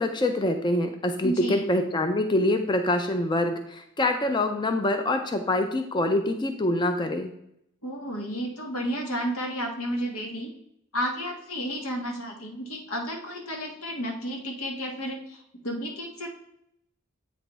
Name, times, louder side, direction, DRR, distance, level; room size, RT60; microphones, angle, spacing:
voice 1, 0.0-7.3, left 1 dB, 20° left, 6 dB, 0.4 m, -25 dB
voice 2, 1.2-1.6 7.8-10.5 10.9-16.3, equal, 85° left, 1 dB, 1.4 m, -32 dB
8.2 x 3.4 x 3.9 m, 0.76 s
head